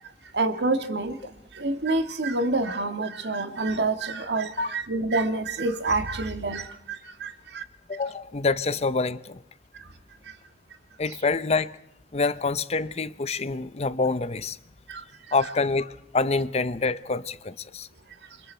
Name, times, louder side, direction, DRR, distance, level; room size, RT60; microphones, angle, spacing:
voice 1, 0.3-7.6 9.7-9.9 10.3-10.4 14.9-15.0, right 2 dB, 75° right, 1.8 m, -28 dB
voice 2, 7.9-9.4 11.0-11.7 12.1-14.6 15.3-17.9, left 3 dB, 40° left, 0.8 m, -26 dB
28.5 x 25.5 x 4.5 m
head